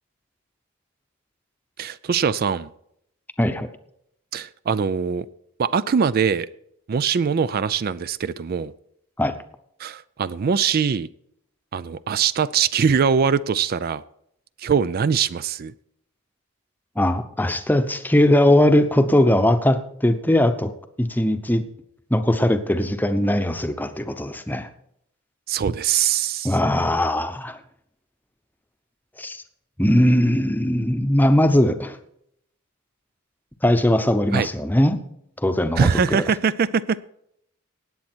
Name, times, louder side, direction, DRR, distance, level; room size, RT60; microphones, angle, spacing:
voice 1, 1.8-2.7 4.3-5.3 5.6-6.5 6.9-8.7 9.8-11.1 11.7-14.0 14.6-15.7 25.5-26.6 34.3-34.5 35.8-37.0, right 6 dB, 45° right, 17 dB, 0.3 m, -22 dB
voice 2, 3.4-3.7 9.2-9.4 17.0-20.7 21.0-21.7 22.1-24.7 26.4-27.6 29.2-29.4 29.8-32.0 33.6-35.0 35.4-36.2, left 1 dB, 10° left, 9 dB, 0.8 m, -20 dB
18.0 x 8.4 x 4.5 m, 0.74 s
head